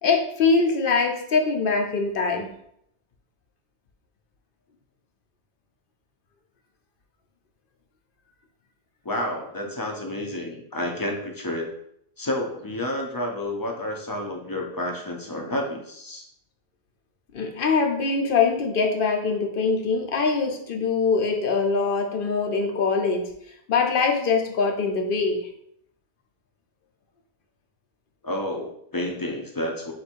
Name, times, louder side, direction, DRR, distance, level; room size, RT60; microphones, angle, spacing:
voice 1, 0.0-2.5 17.3-23.3 23.7-25.4, left 4 dB, 60° left, 4 dB, 0.7 m, -23 dB
voice 2, 9.0-11.7 12.2-16.2 28.2-29.9, left 1 dB, 25° left, 2 dB, 0.5 m, -30 dB
4.1 x 2.6 x 4.4 m, 0.72 s
omnidirectional pair, 1.1 m